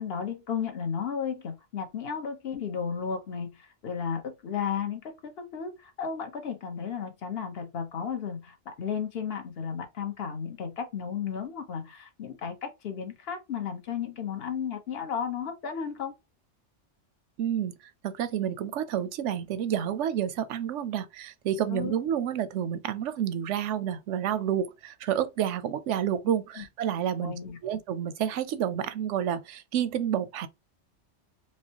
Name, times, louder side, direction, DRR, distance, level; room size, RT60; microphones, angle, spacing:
voice 1, 0.0-16.1 21.7-22.0 26.5-26.6 27.2-27.6, left 7 dB, 60° left, 1.1 m, -34 dB
voice 2, 17.4-17.7 18.0-27.3 27.6-30.5, right 9 dB, 85° right, 0.9 m, -29 dB
4.7 x 2.1 x 2.8 m
omnidirectional pair, 1.2 m